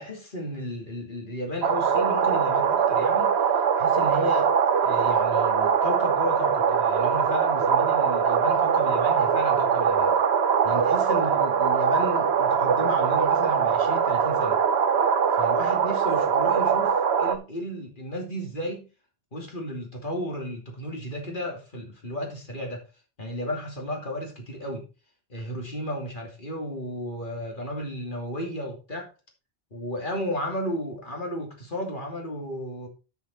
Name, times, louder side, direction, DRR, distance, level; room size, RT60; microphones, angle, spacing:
voice 1, 0.0-4.5 4.8-10.2 10.6-14.6 15.4-18.9 19.3-22.8 23.2-24.9 25.3-29.1 29.7-32.9, equal, 50° left, 2.9 m, -33 dB
sound 1, 1.6-17.4, right 7 dB, 75° right, 1.1 m, -22 dB
11.0 x 5.7 x 4.3 m
omnidirectional pair, 1.1 m